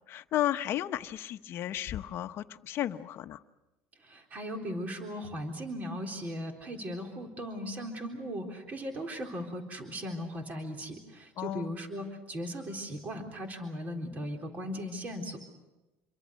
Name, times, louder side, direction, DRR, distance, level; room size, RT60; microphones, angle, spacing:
voice 1, 0.1-3.4 11.4-11.7, left 12 dB, 50° left, 9 dB, 1.0 m, -33 dB
voice 2, 4.0-15.4, equal, 30° right, 3 dB, 3.8 m, -38 dB
28.0 x 23.5 x 6.5 m, 1.0 s
cardioid pair, 130°, 5 cm